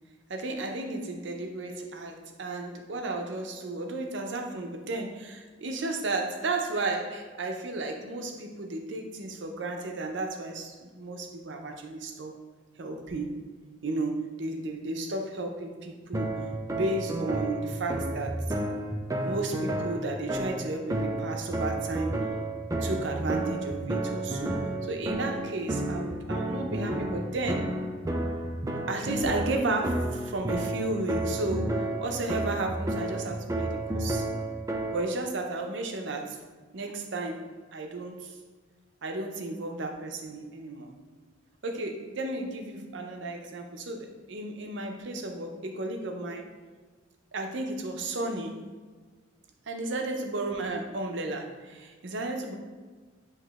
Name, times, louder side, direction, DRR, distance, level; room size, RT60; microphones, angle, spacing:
voice 1, 0.3-12.3 12.8-13.4 13.8-16.3 16.7-18.4 19.2-22.3 22.8-27.7 28.9-34.3 34.9-36.4 36.7-37.5 37.7-38.4 39.0-40.9 41.6-46.5 47.3-48.6 49.7-52.5, right 2 dB, 65° right, 3 dB, 0.6 m, -33 dB
sound 1, 16.1-35.2, right 1 dB, 15° right, 0.3 m, -31 dB
7.5 x 3.0 x 2.4 m, 1.4 s
head